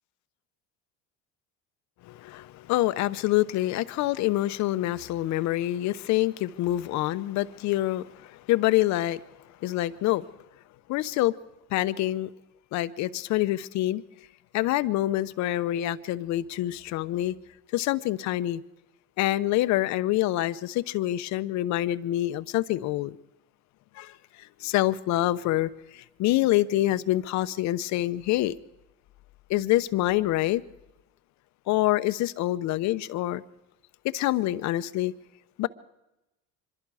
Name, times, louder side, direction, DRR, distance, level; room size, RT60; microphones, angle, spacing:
voice 1, 2.1-9.2 9.6-10.3 10.9-11.4 11.7-12.3 12.7-14.0 14.5-17.4 17.7-18.6 19.2-23.2 24.0-24.1 24.6-28.5 29.5-30.6 31.7-33.4 34.1-35.1 35.6-35.7, left 15 dB, 60° left, 0.8 m, -26 dB
25.0 x 22.0 x 4.9 m
supercardioid pair, 115°, 32 cm